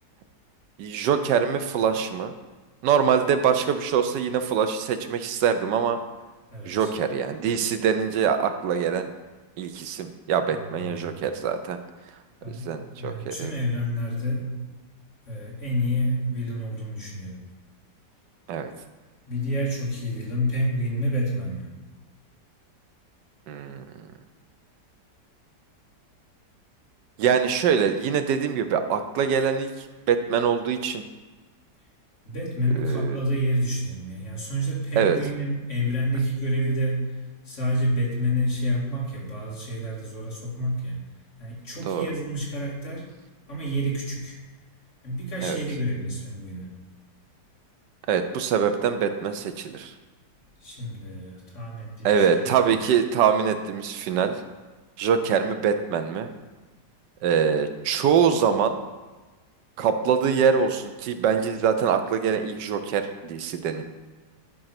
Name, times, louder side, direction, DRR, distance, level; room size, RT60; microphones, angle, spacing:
voice 1, 0.8-2.3 2.8-6.0 6.6-9.1 9.6-11.8 12.7-13.5 18.5-18.7 23.5-24.1 27.2-31.0 32.8-33.2 35.0-35.2 41.9-42.1 45.4-45.6 48.1-49.9 52.0-54.3 55.0-56.3 57.2-58.8 59.8-63.8, right 7 dB, 85° right, 8 dB, 1.4 m, -24 dB
voice 2, 6.5-6.9 10.5-11.1 12.4-14.6 15.3-17.4 19.3-21.7 32.2-37.1 37.4-41.0 41.4-43.1 43.5-44.4 45.0-46.8 50.6-52.9, equal, 45° left, -5 dB, 2.6 m, -28 dB
11.0 x 3.8 x 5.9 m, 1.3 s
omnidirectional pair, 1.8 m